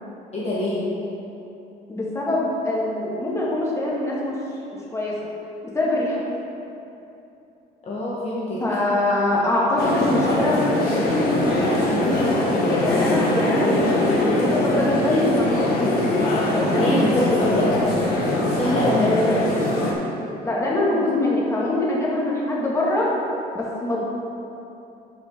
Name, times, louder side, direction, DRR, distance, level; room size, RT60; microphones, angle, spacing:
voice 1, 0.3-0.8 7.8-8.6 16.7-17.7 18.4-19.2, left 1 dB, 40° left, -7 dB, 1.6 m, -24 dB
voice 2, 1.9-4.3 4.7-5.3 5.7-6.2 8.6-12.4 12.8-16.0 16.5-17.5 19.0-19.4 20.4-23.1 23.5-24.0, left 1 dB, 15° left, -6 dB, 2.1 m, -24 dB
sound 1, 9.8-19.9, left 1 dB, 70° left, 1.7 m, -22 dB
12.0 x 5.5 x 3.9 m, 2.9 s
cardioid pair, 110°, 17 cm